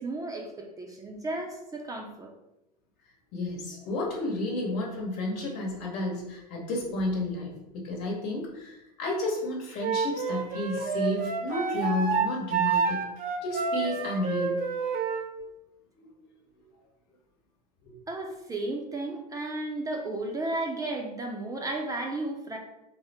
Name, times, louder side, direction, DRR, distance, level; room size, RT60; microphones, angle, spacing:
voice 1, 0.0-2.3 18.1-22.6, right 2 dB, 15° right, 0 dB, 0.6 m, -34 dB
voice 2, 3.3-13.1 13.4-14.6 16.0-16.1 17.9-18.0, left 2 dB, 55° left, -1 dB, 1.2 m, -31 dB
Wind instrument woodwind instrument, 9.8-15.3, right 5 dB, 45° right, 0.8 m, -28 dB
3.7 x 2.1 x 4.2 m, 0.93 s
hypercardioid pair, 90°, 20 cm